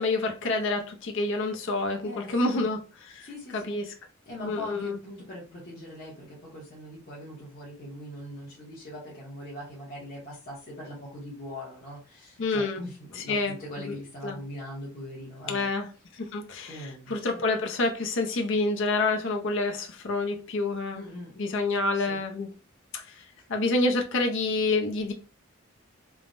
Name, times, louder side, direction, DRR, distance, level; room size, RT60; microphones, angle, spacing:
voice 1, 0.0-3.3 3.5-3.9 4.4-5.0 12.4-12.8 13.3-13.6 13.9-14.0 14.2-14.4 15.5-15.9 16.1-21.0 21.4-22.5 22.9-25.1, left 2 dB, 60° left, 0.6 m, -28 dB
voice 2, 2.0-2.7 3.2-15.7 16.7-17.4 20.9-21.3 21.9-22.2 23.4-23.5, left 1 dB, 45° left, 0.9 m, -41 dB
3.3 x 2.1 x 2.5 m
head